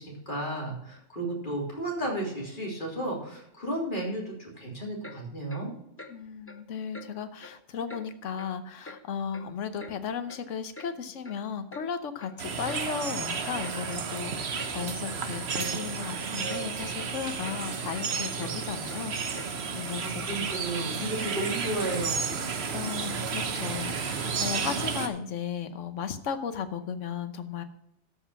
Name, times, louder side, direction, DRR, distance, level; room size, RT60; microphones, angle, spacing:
voice 1, 0.0-5.7 19.6-22.5, right 1 dB, 40° left, -2 dB, 3.4 m, -33 dB
Clock, 5.0-5.2 5.5-5.6 6.0-6.1 6.5-6.6 6.9-7.1 7.4-7.6 7.9-8.0 8.4-8.5 8.9-9.0 9.3-9.9 10.3-10.4 10.7-10.9 11.2-11.4 11.7-11.9 12.2-12.3 12.7-12.8 13.1-13.3 13.6-13.8 14.1-14.2 14.6-14.7 15.1-15.2 15.5-15.7 16.0-16.2 16.5-16.6 17.0-17.1 17.4-17.6 17.9-18.0 18.4-18.5 18.9-19.0 19.3-19.5 19.9-20.0, left 3 dB, 10° left, 1.0 m, -45 dB
voice 2, 6.1-20.2 22.7-27.6, left 7 dB, 80° left, 10 dB, 1.3 m, -35 dB
sound 1, 12.4-25.1, right 5 dB, 60° right, 1.2 m, -32 dB
13.0 x 5.7 x 5.7 m, 0.77 s
omnidirectional pair, 1.3 m